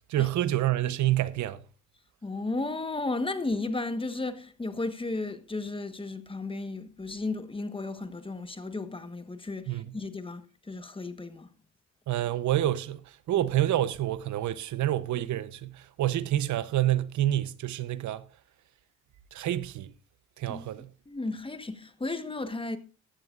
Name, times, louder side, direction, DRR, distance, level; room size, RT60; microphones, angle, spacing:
voice 1, 0.1-1.6 9.7-9.8 12.1-18.2 19.3-19.9 20.4-20.9, right 13 dB, 75° right, 0.8 m, -28 dB
voice 2, 2.2-11.5 20.5-20.6 21.1-22.8, left 2 dB, 15° left, 1.2 m, -34 dB
15.5 x 12.5 x 2.5 m
cardioid pair, 90°, 30 cm